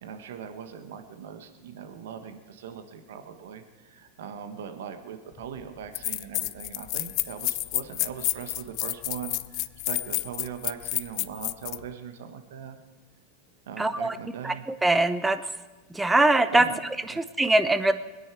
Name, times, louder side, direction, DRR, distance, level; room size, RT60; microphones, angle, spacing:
voice 1, 0.0-12.8 13.7-14.6 16.5-17.2, right 8 dB, 75° right, 8 dB, 1.3 m, -40 dB
sound 1, 5.4-5.5 5.9-11.8, left 21 dB, 55° left, 0.4 m, -30 dB
voice 2, 13.8-14.1 14.4-14.5 14.8-15.4 15.9-16.7 17.2-17.9, right 2 dB, 10° right, 12 dB, 0.8 m, -22 dB
21.5 x 9.8 x 4.6 m, 1.2 s
hypercardioid pair, 100°, 0 cm